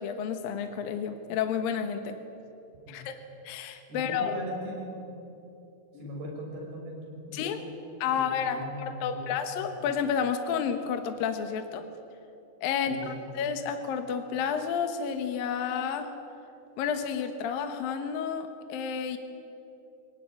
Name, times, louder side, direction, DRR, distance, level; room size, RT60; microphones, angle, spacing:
voice 1, 0.0-2.2 2.9-3.2 3.4-4.3 7.3-7.6 8.0-11.9 12.6-16.1 16.8-19.2, left 7 dB, 65° left, 7 dB, 2.4 m, -31 dB
voice 2, 3.9-5.2 5.9-7.7 8.1-9.1 9.7-9.9 12.9-13.3, equal, 55° right, -2 dB, 7.8 m, -40 dB
23.5 x 18.5 x 9.9 m, 2.7 s
omnidirectional pair, 5.5 m